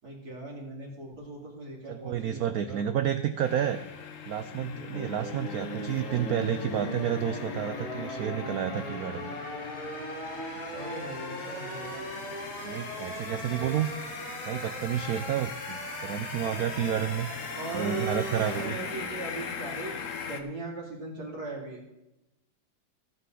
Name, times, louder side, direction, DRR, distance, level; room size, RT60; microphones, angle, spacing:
voice 1, 0.0-3.0 10.7-12.0 17.5-19.9 20.3-21.8, right 2 dB, 50° right, -2 dB, 3.2 m, -38 dB
voice 2, 1.9-3.8 4.2-9.4 12.6-13.9 14.5-17.3 17.7-18.8, right 10 dB, 80° right, 10 dB, 0.8 m, -30 dB
sound 1, 3.4-20.4, left 6 dB, 50° left, 1.1 m, -41 dB
sound 2, 4.9-19.1, equal, 85° left, 4.9 m, -39 dB
16.0 x 8.4 x 3.9 m, 0.92 s
omnidirectional pair, 2.1 m